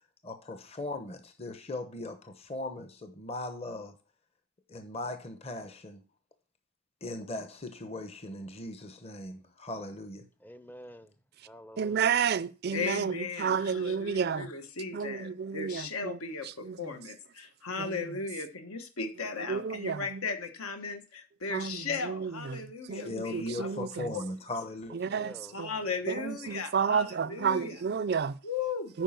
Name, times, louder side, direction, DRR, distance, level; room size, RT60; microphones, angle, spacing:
voice 1, 0.2-4.0 4.7-6.0 7.0-10.3 22.9-24.9, left 2 dB, 25° left, 0.8 m, -39 dB
voice 2, 10.4-11.1 11.4-12.1 24.9-25.6 26.4-26.5, equal, 10° left, 0.5 m, -49 dB
voice 3, 11.8-14.5 14.9-16.2 16.4-16.8 17.8-18.0 19.5-20.2 21.5-24.1 24.9-25.7 26.1-28.4 28.9-29.0, right 6 dB, 45° right, 0.4 m, -31 dB
voice 4, 12.7-24.2 25.5-27.8 28.4-29.0, left 4 dB, 75° left, 1.3 m, -37 dB
9.1 x 5.4 x 5.8 m
head